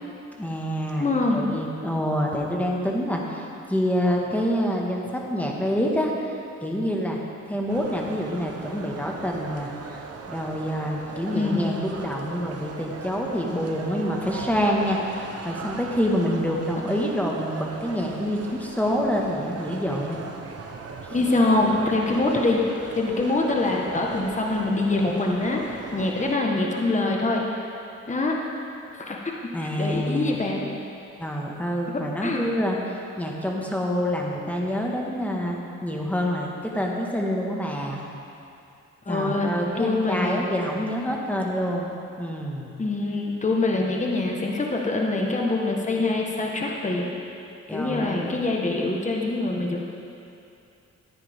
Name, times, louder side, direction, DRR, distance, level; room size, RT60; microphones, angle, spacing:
voice 1, 0.4-6.4 6.6-7.2 7.5-9.7 10.3-20.2 29.5-30.4 31.2-38.0 39.1-41.9 42.2-42.7 47.7-48.4, equal, 5° left, -1 dB, 1.7 m, -27 dB
voice 2, 1.0-1.5 11.3-11.7 21.1-27.6 28.1-28.4 29.0-29.2 29.6-30.7 32.2-32.4 39.1-40.4 42.8-47.1 47.7-49.8, left 2 dB, 25° left, -1 dB, 1.4 m, -24 dB
sound 1, 7.7-26.4, right 4 dB, 55° right, 1.0 m, -38 dB
14.0 x 9.8 x 3.6 m, 2.7 s
cardioid pair, 85°, 30 cm